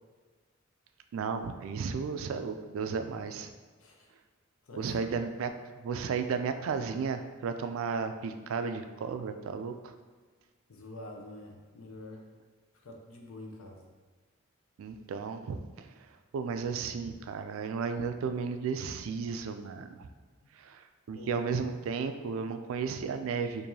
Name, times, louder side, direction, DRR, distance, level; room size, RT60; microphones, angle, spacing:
voice 1, 1.1-3.5 4.8-5.5 5.8-9.9 14.8-15.9 16.3-20.1 20.5-23.7, right 5 dB, 75° right, 8 dB, 0.3 m, -34 dB
voice 2, 4.7-5.1 9.6-9.7 10.7-12.2 12.8-13.9 21.1-21.3, left 1 dB, 85° left, 1 dB, 0.6 m, -47 dB
4.6 x 2.6 x 2.7 m, 1.4 s
head